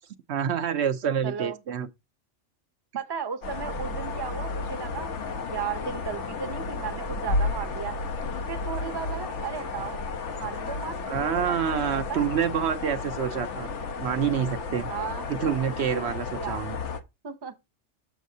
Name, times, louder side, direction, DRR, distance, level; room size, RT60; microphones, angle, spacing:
voice 1, 0.3-1.9 11.1-14.9 15.3-16.8, right 8 dB, 70° right, 0.9 m, -27 dB
voice 2, 1.2-1.6 2.9-8.0 8.5-10.0 10.4-12.3 14.9-15.2 16.4-16.6 17.2-17.5, right 7 dB, 25° right, 0.7 m, -35 dB
sound 1, 3.4-17.0, left 3 dB, 80° left, 1.3 m, -32 dB
7.2 x 6.8 x 2.7 m
omnidirectional pair, 1.2 m